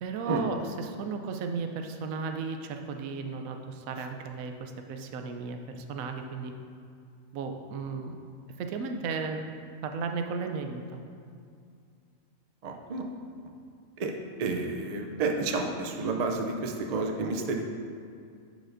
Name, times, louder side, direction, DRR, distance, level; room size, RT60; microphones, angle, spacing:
voice 1, 0.0-6.5 7.3-8.2 8.6-9.5 9.8-11.0, right 4 dB, 90° right, 5 dB, 1.0 m, -35 dB
voice 2, 12.6-13.0 14.0-14.1 14.4-17.6, right 3 dB, 60° right, 3 dB, 0.4 m, -30 dB
10.0 x 5.0 x 2.6 m, 2.3 s
omnidirectional pair, 1.4 m